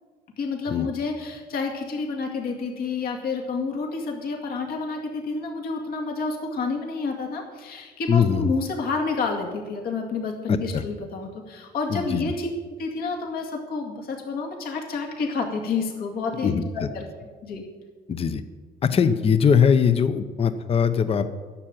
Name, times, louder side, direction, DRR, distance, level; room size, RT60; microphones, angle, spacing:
voice 1, 0.4-12.5 12.8-17.0 17.4-17.6, left 4 dB, 65° left, 2 dB, 2.3 m, -29 dB
voice 2, 8.1-8.5 10.5-10.8 11.9-12.2 16.4-16.9 18.1-18.4 18.8-21.3, left 7 dB, 35° left, 10 dB, 0.8 m, -21 dB
11.5 x 7.5 x 9.2 m, 1.4 s
cardioid pair, 110°, 17 cm